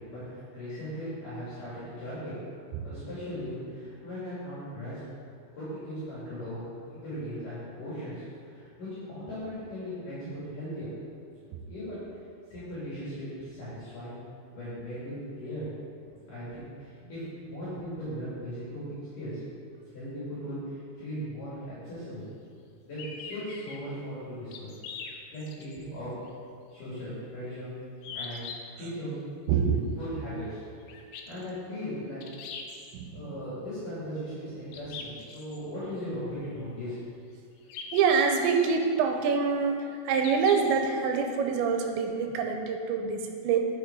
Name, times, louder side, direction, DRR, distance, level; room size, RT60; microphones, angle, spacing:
voice 1, 0.1-2.3 2.8-5.1 5.5-10.9 11.7-12.1 12.5-14.2 14.5-15.1 15.4-15.7 16.3-19.4 19.9-20.6 21.0-22.3 22.8-24.8 25.0-26.1 26.7-27.7 28.1-28.4 28.8-29.2 30.0-30.6 31.3-32.2 33.1-37.0, equal, 50° left, -11 dB, 4.0 m, -38 dB
sound 1, 23.0-23.8 24.5-25.8 26.3-26.4 28.0-28.5 30.9-31.5 32.2-32.9 34.7-35.6 37.7-38.7 40.2-40.8, left 5 dB, 85° left, 2.1 m, -41 dB
voice 2, 29.5-30.0 32.9-33.1 37.9-39.8 40.1-43.7, right 6 dB, 80° right, 4 dB, 3.1 m, -25 dB
11.5 x 6.8 x 4.8 m, 2.3 s
omnidirectional pair, 5.2 m